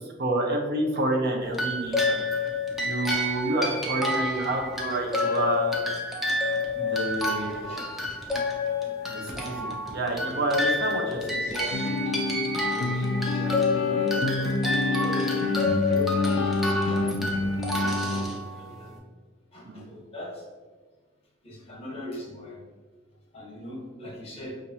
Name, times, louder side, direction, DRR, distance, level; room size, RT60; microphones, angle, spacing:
voice 1, 0.0-2.2 2.8-5.8 6.8-7.7 9.1-11.4 12.7-13.0 19.6-19.9, right 1 dB, 55° right, 1 dB, 0.6 m, -29 dB
sound 1, 1.5-18.9, left 2 dB, ahead, 0.5 m, -29 dB
voice 2, 4.0-4.6 7.6-7.8 8.7-9.2 11.1-11.9 13.1-15.3 15.8-18.9 19.5-20.4 21.4-22.6 23.3-24.5, left 1 dB, 30° left, -3 dB, 1.1 m, -40 dB
sound 2, 11.7-18.3, left 3 dB, 80° left, 0.4 m, -27 dB
5.4 x 2.5 x 2.8 m, 1.4 s
head